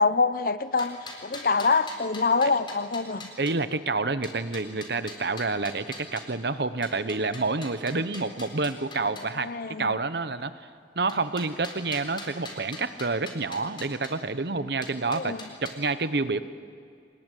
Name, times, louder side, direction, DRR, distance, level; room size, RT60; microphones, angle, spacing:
voice 1, 0.0-3.3 9.4-10.0 15.1-15.4, left 4 dB, 50° left, 14 dB, 0.8 m, -25 dB
sound 1, 0.6-3.5 4.2-6.3 6.8-9.3 11.1-14.1 14.8-15.7, left 2 dB, 30° left, 4.0 m, -43 dB
voice 2, 3.4-10.7 11.0-16.4, right 3 dB, 65° right, 13 dB, 0.9 m, -28 dB
25.5 x 20.5 x 9.2 m, 2.3 s
head